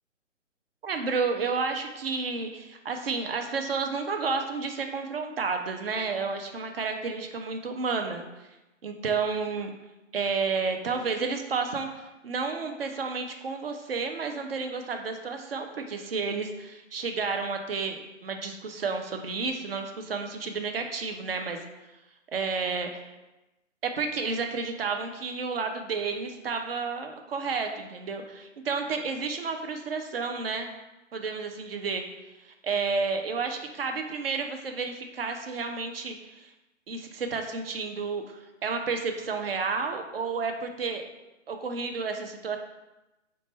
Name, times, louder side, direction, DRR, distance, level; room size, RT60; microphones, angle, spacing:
voice 1, 0.8-8.2 8.8-9.7 10.1-21.6 22.3-23.1 23.8-30.7 31.1-32.0 32.4-36.5 36.9-41.0 41.5-42.6, right 4 dB, 50° right, 5 dB, 0.5 m, -31 dB
3.8 x 2.2 x 3.1 m, 1.0 s
figure-of-eight pair, 135°, 38 cm